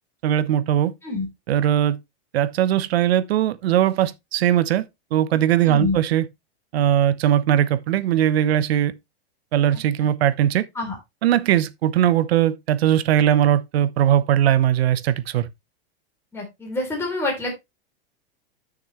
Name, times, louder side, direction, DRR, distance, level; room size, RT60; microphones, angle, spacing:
voice 1, 0.2-0.9 1.5-2.0 2.3-4.8 5.1-6.3 6.7-8.9 9.5-10.7 11.2-15.5, right 11 dB, 70° right, 1.1 m, -19 dB
voice 2, 16.3-17.5, left 3 dB, 10° left, 3.5 m, -26 dB
11.5 x 6.5 x 3.1 m
supercardioid pair, 140°, 32 cm